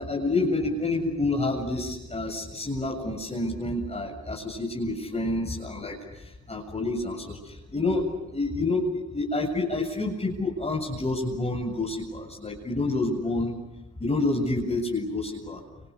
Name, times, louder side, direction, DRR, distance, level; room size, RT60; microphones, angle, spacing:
voice 1, 0.0-6.0 6.5-7.4 7.7-13.5 14.0-15.6, left 2 dB, 20° left, -1 dB, 7.4 m, -28 dB
30.0 x 28.0 x 7.1 m, 0.96 s
cardioid pair, 90°, 30 cm